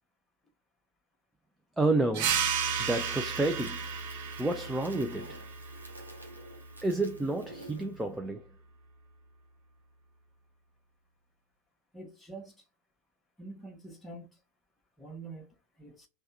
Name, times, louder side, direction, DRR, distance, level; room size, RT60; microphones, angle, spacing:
voice 1, 1.8-2.4 2.8-3.9 4.4-5.4 6.8-8.4, right 2 dB, 5° right, 0.3 m, -30 dB
sound 1, 2.1-7.3, right 7 dB, 45° right, 0.6 m, -34 dB
Crackle, 2.4-8.1, right 1 dB, 85° right, 0.9 m, -50 dB
voice 2, 11.9-12.6 13.4-14.3 15.0-15.5 15.8-16.1, right 3 dB, 10° left, 1.0 m, -45 dB
3.3 x 2.2 x 2.7 m
figure-of-eight pair, 90°, 0 cm